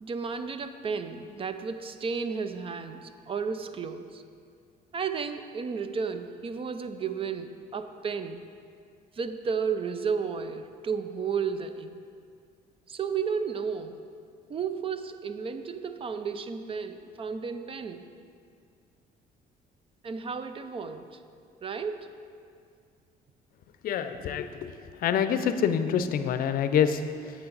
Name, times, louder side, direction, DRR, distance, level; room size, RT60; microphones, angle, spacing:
voice 1, 0.0-4.2 4.9-8.4 9.2-12.0 12.9-14.0 14.5-18.1 20.0-21.2 21.6-22.1, right 6 dB, 35° right, 10 dB, 0.5 m, -33 dB
voice 2, 23.8-24.7 25.0-27.3, left 8 dB, 60° left, 10 dB, 0.5 m, -26 dB
8.5 x 7.7 x 4.0 m, 2.3 s
cardioid pair, 110°, 17 cm